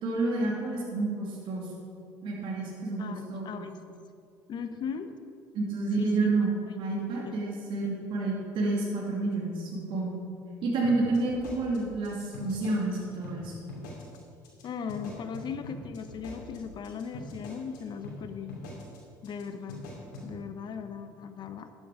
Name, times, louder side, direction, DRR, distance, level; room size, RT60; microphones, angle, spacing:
voice 1, 0.0-1.7 2.2-3.6 5.5-10.3 10.6-13.5, right 3 dB, 60° right, -3 dB, 2.8 m, -29 dB
voice 2, 3.0-3.9 4.5-5.1 5.9-6.3 6.7-6.8 7.2-7.4 14.6-18.6 19.2-19.9 20.2-21.7, left 6 dB, 50° left, 9 dB, 1.0 m, -38 dB
sound 1, 10.8-13.0 13.2-13.4 13.7-14.2 14.4-14.6 14.9-17.8 18.0-18.2 18.5-19.0 19.2-19.4 19.7-20.3, left 2 dB, 80° left, 2.9 m, -43 dB
12.0 x 9.0 x 5.0 m, 2.4 s
hypercardioid pair, 70°, 10 cm